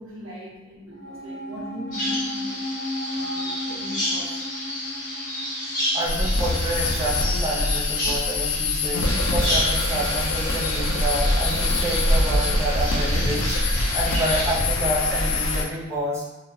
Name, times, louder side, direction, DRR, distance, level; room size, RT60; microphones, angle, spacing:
voice 1, 0.0-2.6 3.0-4.3 14.7-15.0, equal, 85° right, -5 dB, 0.7 m, -40 dB
sound 1, 0.9-7.5 7.7-7.8, left 1 dB, 50° right, 1.1 m, -35 dB
Bird vocalization bird call bird song, 1.9-14.5, left 1 dB, 40° left, 1.0 m, -30 dB
voice 2, 5.9-16.2, right 1 dB, 15° right, -7 dB, 0.5 m, -28 dB
sound 2, 6.1-15.6, left 2 dB, 80° left, 0.4 m, -24 dB
2.4 x 2.0 x 2.6 m, 1.0 s
head